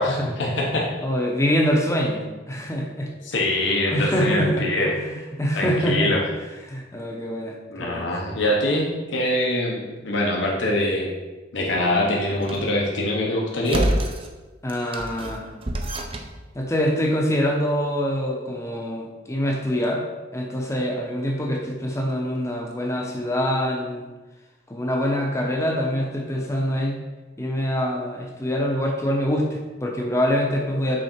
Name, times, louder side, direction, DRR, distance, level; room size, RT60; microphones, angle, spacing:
voice 1, 0.0-0.9 3.2-4.9 5.5-6.2 7.7-11.1 11.5-13.9, left 1 dB, 75° left, -1 dB, 0.9 m, -23 dB
voice 2, 1.0-2.2 2.5-3.1 3.9-4.7 4.9-6.1 6.6-8.1 14.6-15.5 16.5-20.0 20.3-24.1 24.7-27.0 27.4-31.0, equal, 15° left, 1 dB, 0.7 m, -25 dB
sound 1, 12.3-12.8 13.6-14.3 14.7-16.4, right 1 dB, 30° right, 0.5 m, -28 dB
6.4 x 3.7 x 4.4 m, 1.2 s
head